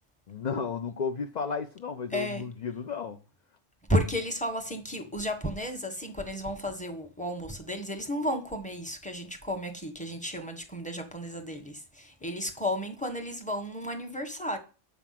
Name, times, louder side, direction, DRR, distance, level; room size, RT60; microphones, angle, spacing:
voice 1, 0.3-3.2, left 5 dB, 45° left, 0.6 m, -33 dB
voice 2, 2.1-2.4 3.9-14.6, equal, 5° left, 1.5 m, -33 dB
8.5 x 7.0 x 5.9 m
omnidirectional pair, 1.3 m